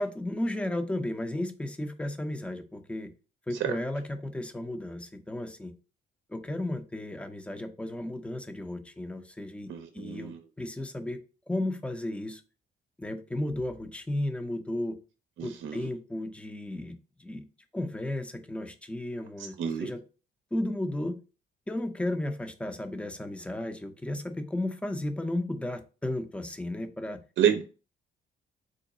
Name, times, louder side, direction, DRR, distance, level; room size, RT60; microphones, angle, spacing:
voice 1, 0.0-3.1 3.5-5.7 6.3-9.7 9.9-11.2 11.5-12.4 13.0-15.0 15.4-16.9 17.2-17.5 17.7-20.0 20.5-21.2 21.7-27.2, left 1 dB, 5° left, 0.5 m, -34 dB
voice 2, 9.7-10.4 15.4-15.9 19.6-19.9 27.4-27.6, right 9 dB, 70° right, 0.6 m, -28 dB
3.8 x 2.2 x 3.8 m
cardioid pair, 90°, 20 cm